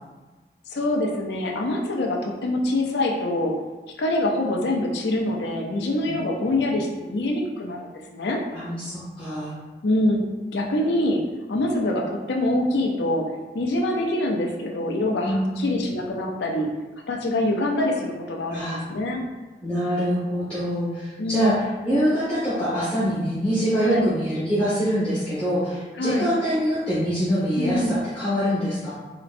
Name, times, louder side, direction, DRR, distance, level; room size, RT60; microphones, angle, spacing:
voice 1, 0.7-3.5 4.0-8.4 9.8-10.2 10.5-11.2 11.5-13.2 13.5-16.7 17.1-19.2 21.2-21.6 23.8-24.1 26.0-26.3 27.6-28.0, left 1 dB, 80° left, 0 dB, 0.5 m, -25 dB
voice 2, 8.5-9.5 15.2-15.6 18.5-18.8 19.6-21.5 21.8-28.9, equal, 5° left, -13 dB, 1.5 m, -24 dB
4.1 x 2.9 x 2.5 m, 1.2 s
head